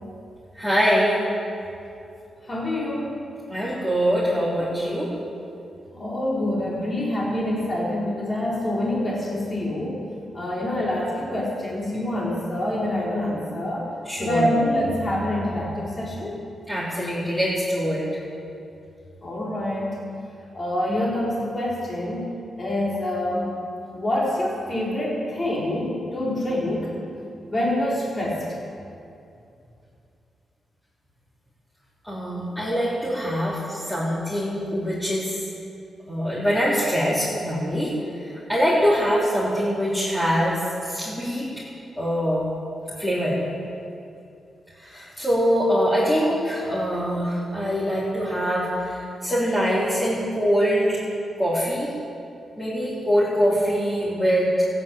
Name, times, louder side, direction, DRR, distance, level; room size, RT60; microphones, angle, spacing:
voice 1, 0.5-1.2 3.5-5.1 14.0-14.5 16.7-18.1 32.0-35.4 36.1-37.9 38.2-41.6 42.0-42.4 43.0-43.5 44.8-51.0 51.4-51.9 52.6-54.7, equal, 10° left, -10 dB, 4.0 m, -23 dB
voice 2, 2.5-3.1 5.9-9.9 10.3-13.8 14.2-16.4 19.2-19.9 20.5-22.3 22.6-23.5 23.9-26.9 27.4-28.4, left 1 dB, 30° left, -5 dB, 3.8 m, -26 dB
15.0 x 9.6 x 8.8 m, 2.6 s
cardioid pair, 90°, 0 cm